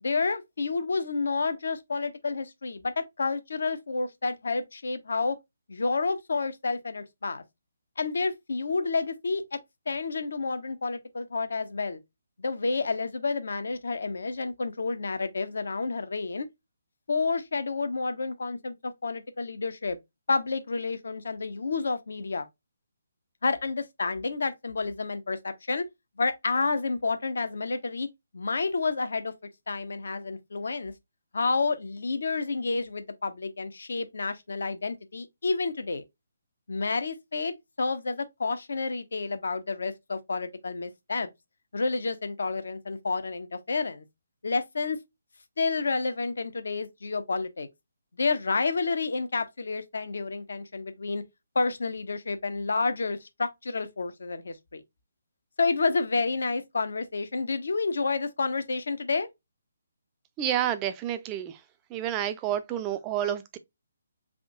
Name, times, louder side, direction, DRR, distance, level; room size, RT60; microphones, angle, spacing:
voice 1, 0.0-5.4 5.7-7.4 8.0-9.6 9.9-12.0 12.4-16.5 17.1-20.0 20.3-22.5 23.4-25.8 26.2-28.1 28.3-29.3 29.7-30.9 31.3-36.0 36.7-41.3 41.7-44.0 44.4-45.0 45.6-47.7 48.2-51.2 51.5-54.8 55.6-59.3, left 4 dB, 55° left, 0.6 m, -29 dB
voice 2, 60.4-61.6 61.9-63.6, right 11 dB, 20° right, 0.4 m, -29 dB
3.6 x 2.4 x 3.6 m
figure-of-eight pair, 140°, 0 cm